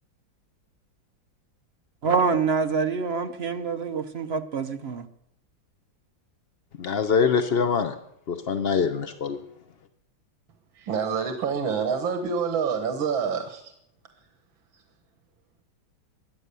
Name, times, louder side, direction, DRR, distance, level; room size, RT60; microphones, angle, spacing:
voice 1, 2.0-5.1, right 5 dB, 55° right, 7 dB, 0.7 m, -26 dB
voice 2, 6.8-7.9 8.3-9.4, left 6 dB, 65° left, 9 dB, 0.6 m, -24 dB
voice 3, 10.8-13.7 14.7-14.8, right 6 dB, 85° right, 6 dB, 2.1 m, -27 dB
22.5 x 8.8 x 6.8 m, 0.75 s
omnidirectional pair, 2.1 m